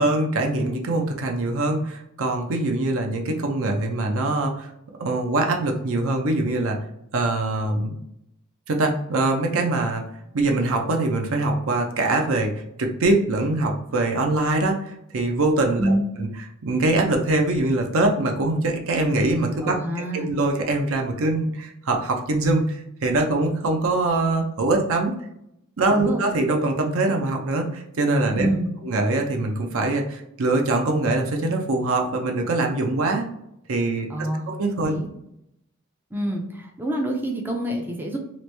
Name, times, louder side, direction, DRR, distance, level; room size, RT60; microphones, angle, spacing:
voice 1, 0.0-4.7 5.0-6.8 7.1-8.0 8.7-10.0 10.3-15.9 16.2-16.3 16.6-19.8 20.1-25.1 25.8-28.5 28.8-33.2 33.7-34.1 34.5-35.0, right 2 dB, 65° right, 3 dB, 0.6 m, -23 dB
voice 2, 15.8-16.1 19.6-20.3 25.9-26.2 28.3-28.7 34.1-35.1 36.1-38.2, right 1 dB, 10° right, 0 dB, 0.4 m, -27 dB
3.1 x 2.5 x 3.2 m, 0.79 s
head